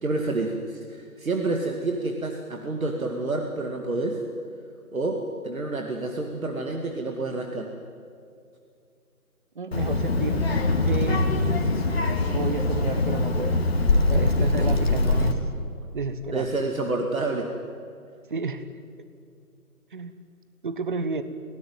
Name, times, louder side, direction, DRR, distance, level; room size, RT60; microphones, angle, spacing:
voice 1, 0.0-4.2 4.9-5.2 5.4-7.7 14.6-14.8 16.3-17.5, right 2 dB, 65° right, 3 dB, 2.4 m, -28 dB
voice 2, 9.5-10.4 10.9-11.3 12.3-13.6 14.1-15.5 15.9-16.5 18.3-18.7 19.9-20.2 20.6-21.2, right 4 dB, 35° right, 12 dB, 1.1 m, -31 dB
Child speech kid speaking, 9.7-15.3, left 2 dB, 40° left, 2.3 m, -23 dB
24.0 x 17.5 x 9.2 m, 2.4 s
figure-of-eight pair, 150°, 45 cm